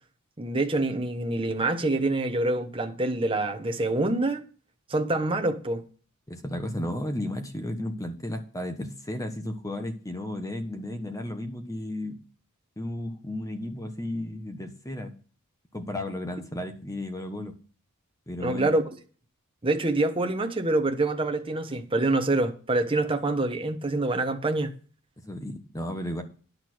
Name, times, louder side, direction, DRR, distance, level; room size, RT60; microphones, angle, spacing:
voice 1, 0.4-4.4 4.9-5.8 18.4-18.8 19.6-24.7, right 2 dB, 25° right, 1.1 m, -26 dB
voice 2, 6.3-12.2 12.8-15.1 15.7-17.5 18.3-18.7 25.2-26.2, left 1 dB, 15° left, 1.2 m, -34 dB
10.5 x 6.7 x 6.2 m
head